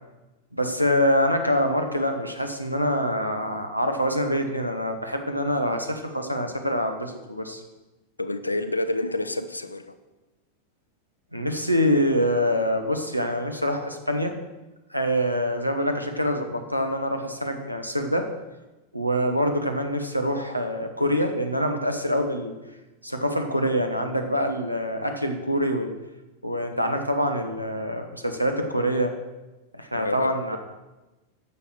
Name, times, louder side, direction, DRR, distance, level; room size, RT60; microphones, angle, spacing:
voice 1, 0.5-7.6 11.3-14.3 14.9-18.3 18.9-22.6 23.0-25.9 26.4-29.1 29.7-30.6, equal, 90° right, 5 dB, 1.1 m, -25 dB
voice 2, 8.2-9.9 29.9-30.6, left 2 dB, 80° left, 10 dB, 0.7 m, -29 dB
10.0 x 6.8 x 6.5 m, 1.1 s
figure-of-eight pair, 90°, 0 cm